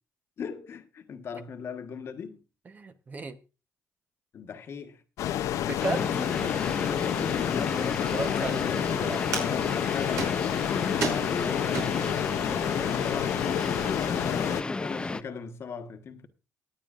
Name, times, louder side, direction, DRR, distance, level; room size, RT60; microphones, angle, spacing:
voice 1, 0.4-2.4 4.3-5.0 7.0-9.0 9.4-16.3, left 6 dB, 50° left, 1.3 m, -39 dB
voice 2, 2.7-3.4 5.6-6.1 6.4-6.5 8.1-9.2, right 3 dB, 30° right, 1.0 m, -34 dB
sound 1, 5.2-14.6, left 11 dB, 80° left, 0.7 m, -29 dB
sound 2, 5.8-15.2, left 3 dB, 15° left, 0.5 m, -33 dB
sound 3, 7.6-12.3 12.9-13.0 13.3-13.8, right 4 dB, 75° right, 5.6 m, -37 dB
23.0 x 8.8 x 2.5 m
cardioid pair, 105°, 5 cm